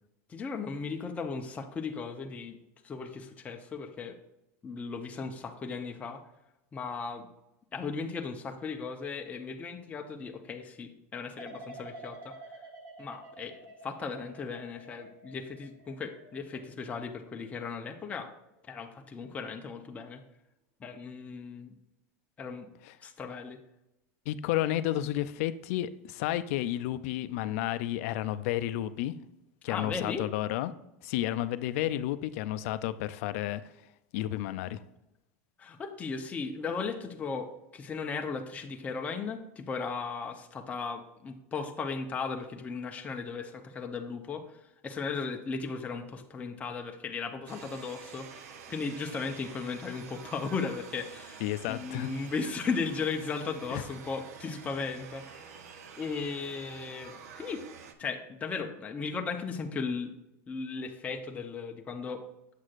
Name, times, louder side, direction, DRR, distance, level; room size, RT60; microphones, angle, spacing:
voice 1, 0.3-2.6 2.8-4.2 4.6-6.2 6.7-7.3 7.7-12.4 13.0-13.6 13.8-18.3 18.7-20.2 20.8-21.7 22.4-22.7 23.0-23.6 29.7-30.3 35.6-44.5 44.8-51.4 51.7-55.5 56.0-57.6 58.0-60.1 60.5-62.2, left 5 dB, 15° left, 3 dB, 0.6 m, -36 dB
sound 1, 11.4-18.3 18.7-19.2, right 1 dB, 40° right, 1.1 m, -50 dB
voice 2, 24.3-29.2 29.6-30.7 31.0-33.6 34.1-34.8 51.4-52.1 53.7-53.8, left 13 dB, 65° left, 13 dB, 0.4 m, -31 dB
sound 2, 47.5-57.9, right 6 dB, 90° right, 0.7 m, -48 dB
7.4 x 6.2 x 2.5 m, 0.89 s
supercardioid pair, 140°, 8 cm